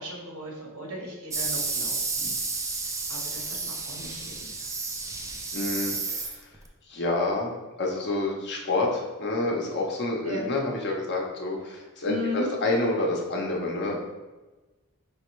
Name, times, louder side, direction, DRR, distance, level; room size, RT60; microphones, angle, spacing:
voice 1, 0.0-2.4 3.1-4.3 4.6-5.1 10.2-10.4 12.1-12.5, left 1 dB, 75° right, -1 dB, 1.2 m, -36 dB
sound 1, 1.3-6.7, right 3 dB, 15° right, 0.3 m, -31 dB
voice 2, 5.5-6.3 6.9-7.5 7.8-14.0, left 2 dB, 50° left, -1 dB, 0.7 m, -28 dB
5.0 x 3.4 x 3.1 m, 1.2 s
head